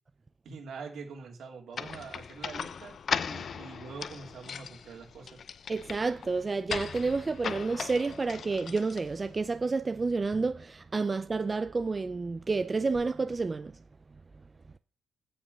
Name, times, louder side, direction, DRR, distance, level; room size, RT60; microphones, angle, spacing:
voice 1, 0.4-3.0 3.2-5.4, right 5 dB, 70° right, 3.1 m, -44 dB
sound 1, 1.7-9.4, left 7 dB, 50° left, 0.6 m, -38 dB
voice 2, 5.7-13.7, right 4 dB, 30° right, 0.5 m, -30 dB
8.6 x 7.9 x 6.8 m
cardioid pair, 90°, 0 cm